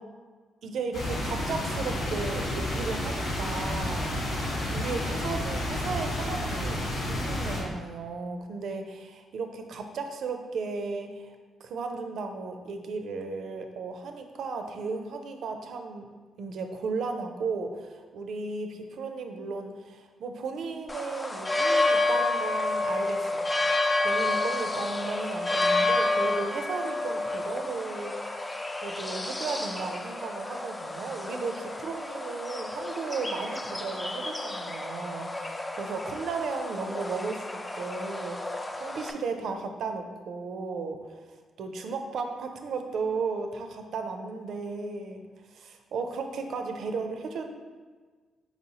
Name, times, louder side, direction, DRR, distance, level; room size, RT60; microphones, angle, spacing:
voice 1, 0.6-4.4 4.7-6.8 7.1-11.4 11.6-16.1 16.4-23.5 24.0-38.4 38.7-41.0 41.6-45.2 45.5-47.4, right 4 dB, 70° right, 5 dB, 0.4 m, -35 dB
sound 1, 0.9-7.6, left 1 dB, 85° left, 1.1 m, -30 dB
sound 2, 20.9-39.1, left 2 dB, 15° left, 0.3 m, -30 dB
4.2 x 4.1 x 2.8 m, 1.4 s
cardioid pair, 95°, 0 cm